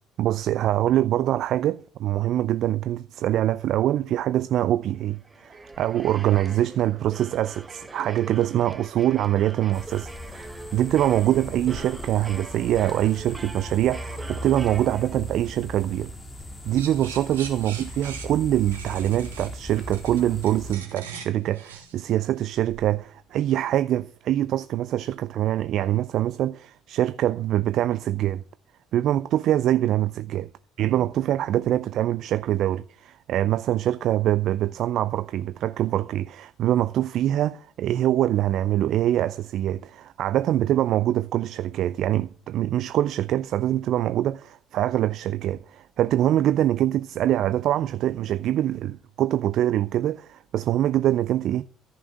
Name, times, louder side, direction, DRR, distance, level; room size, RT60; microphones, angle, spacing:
voice 1, 0.2-10.4 10.7-16.1 16.6-28.4 28.9-30.5 30.8-51.6, right 12 dB, 55° right, 0.5 m, -24 dB
sound 1, 5.1-15.5, right 2 dB, 20° right, 1.4 m, -42 dB
sound 2, 9.7-20.7, left 1 dB, 20° left, 2.4 m, -39 dB
sound 3, 16.8-22.9, right 7 dB, 80° right, 2.6 m, -42 dB
14.0 x 6.1 x 8.4 m
hypercardioid pair, 55°, 0 cm